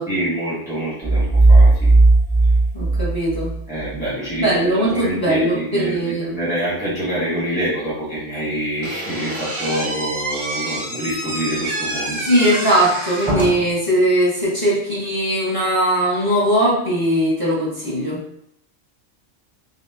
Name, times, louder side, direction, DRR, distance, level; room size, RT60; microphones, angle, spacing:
voice 1, 0.1-1.9 3.7-12.3, right 1 dB, 5° right, -9 dB, 1.4 m, -26 dB
sound 1, 1.0-3.9, right 2 dB, 40° left, 2.1 m, -14 dB
voice 2, 2.7-3.5 4.4-6.4 12.2-18.2, right 1 dB, 15° left, -7 dB, 1.5 m, -19 dB
Slam / Squeak, 8.8-13.8, right 1 dB, 30° right, 0.8 m, -27 dB
5.9 x 2.7 x 2.9 m, 0.71 s
omnidirectional pair, 1.3 m